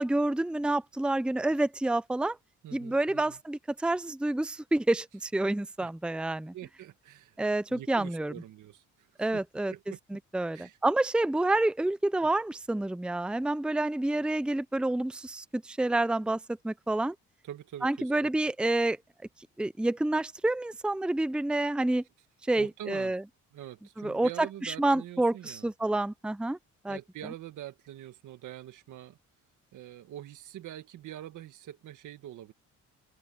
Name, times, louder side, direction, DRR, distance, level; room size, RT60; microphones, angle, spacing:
voice 1, 0.0-2.4 2.7-6.5 7.4-8.3 9.2-9.7 10.1-17.1 17.8-19.0 19.6-22.0 22.5-23.2 24.0-26.6 26.8-27.0, right 2 dB, 5° right, 0.7 m, -28 dB
voice 2, 2.6-3.4 5.8-5.9 6.5-7.4 7.7-9.4 9.7-10.0 10.5-10.8 17.4-18.3 22.6-23.2 23.5-25.7 26.9-29.2 29.7-32.5, right 12 dB, 80° right, 2.1 m, -44 dB
open air
cardioid pair, 90°, 30 cm